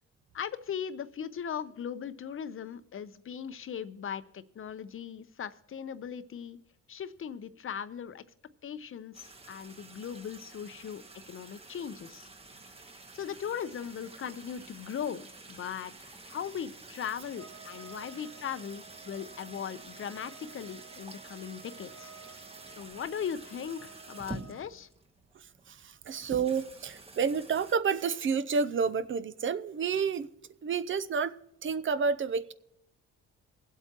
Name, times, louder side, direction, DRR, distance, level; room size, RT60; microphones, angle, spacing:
voice 1, 0.3-6.6 6.9-8.2 8.6-12.3 13.1-22.1 22.7-24.9, left 8 dB, 45° left, 0.8 m, -39 dB
sound 1, 9.1-27.7, right 2 dB, 20° right, 1.1 m, -49 dB
Trumpet, 17.3-24.7, right 6 dB, 75° right, 2.1 m, -53 dB
voice 2, 26.1-30.3 30.6-31.3 31.6-32.5, right 6 dB, 40° right, 0.6 m, -29 dB
22.5 x 8.2 x 3.0 m
cardioid pair, 90°, 30 cm